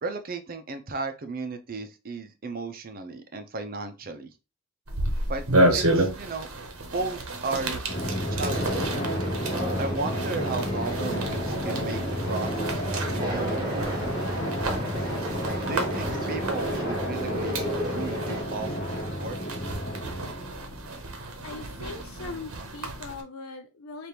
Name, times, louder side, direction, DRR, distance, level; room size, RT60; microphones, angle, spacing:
voice 1, 0.0-4.3 5.3-5.4 5.7-6.5 6.8-7.8 8.3-8.9 9.8-14.0 15.6-18.9 19.2-19.4, right 3 dB, 40° right, 8 dB, 0.6 m, -35 dB
sound 1, 4.9-23.2, right 1 dB, 80° right, 0.9 m, -31 dB
Drum, 7.9-21.0, equal, 40° left, 1.0 m, -31 dB
Conversation, 8.4-18.4, equal, 20° right, 1.1 m, -34 dB
voice 2, 21.4-24.1, left 3 dB, 75° left, 5 dB, 0.5 m, -40 dB
5.0 x 2.5 x 2.9 m, 0.29 s
head